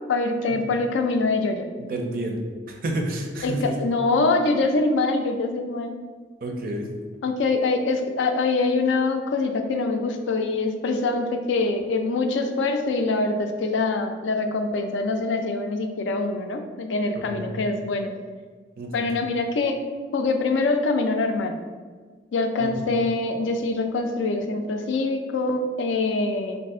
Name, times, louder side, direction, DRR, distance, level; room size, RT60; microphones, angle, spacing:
voice 1, 0.1-1.7 3.4-5.9 7.2-18.1 18.9-19.8 20.1-21.6 22.3-26.6, left 3 dB, 80° left, 5 dB, 0.4 m, -24 dB
voice 2, 1.8-2.4 2.7-3.7 6.4-6.9 17.4-17.6 18.8-19.1 22.6-22.7, right 1 dB, 50° right, 2 dB, 0.5 m, -29 dB
2.6 x 2.4 x 3.6 m, 1.5 s
head